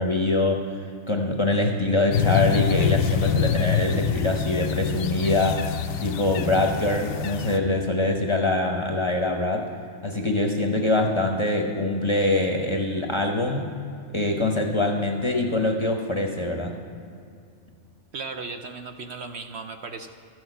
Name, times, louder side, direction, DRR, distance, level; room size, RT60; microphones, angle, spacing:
voice 1, 0.0-5.7 6.0-9.7 10.0-13.7 14.1-16.8, left 2 dB, 25° left, 2 dB, 0.8 m, -24 dB
sound 1, 2.1-7.6, left 8 dB, 85° left, 1.0 m, -25 dB
voice 2, 18.1-20.1, right 4 dB, 60° right, 5 dB, 0.9 m, -36 dB
13.5 x 6.4 x 7.9 m, 2.5 s
omnidirectional pair, 1.4 m